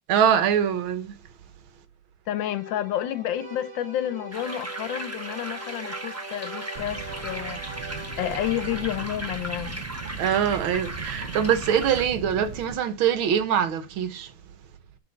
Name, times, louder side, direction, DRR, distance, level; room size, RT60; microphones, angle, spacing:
voice 1, 0.1-1.1 10.2-14.3, right 8 dB, 85° right, 1.8 m, -23 dB
voice 2, 2.3-7.6 8.2-9.9, left 12 dB, 75° left, 1.3 m, -30 dB
sound 1, 2.3-9.2, right 2 dB, 35° right, 2.1 m, -41 dB
sound 2, 4.3-12.1, right 1 dB, 15° right, 0.6 m, -37 dB
sound 3, 6.7-12.7, right 5 dB, 50° right, 1.0 m, -38 dB
7.1 x 3.7 x 6.5 m
omnidirectional pair, 2.2 m